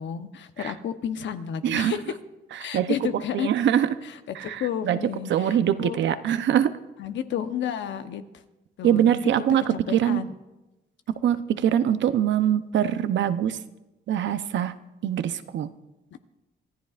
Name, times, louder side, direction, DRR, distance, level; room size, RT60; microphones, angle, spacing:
voice 1, 0.0-2.1 2.6-3.5 4.0-6.0 7.0-8.2 8.8-9.2 9.9-10.3, left 9 dB, 70° left, 9 dB, 1.0 m, -31 dB
voice 2, 1.6-1.9 2.7-4.0 4.3-5.0 5.3-6.7 8.8-10.2 11.2-13.6 14.1-14.8 15.0-15.7, right 10 dB, 70° right, 12 dB, 0.8 m, -23 dB
25.5 x 14.5 x 2.5 m, 1.0 s
cardioid pair, 90°, 20 cm